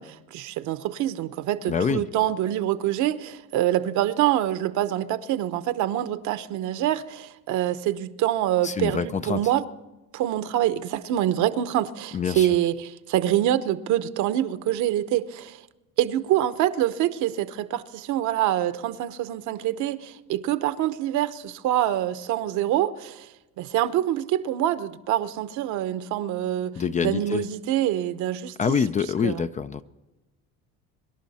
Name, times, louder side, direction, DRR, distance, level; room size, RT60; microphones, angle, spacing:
voice 1, 0.0-9.6 10.1-15.6 16.0-23.3 23.6-26.7 27.0-28.5 29.2-29.4, right 12 dB, 60° right, 1.0 m, -25 dB
voice 2, 1.7-2.0 8.6-9.4 12.1-12.5 26.8-27.4 28.6-29.8, left 6 dB, 25° left, 0.4 m, -25 dB
25.5 x 11.5 x 4.2 m
cardioid pair, 115°, 32 cm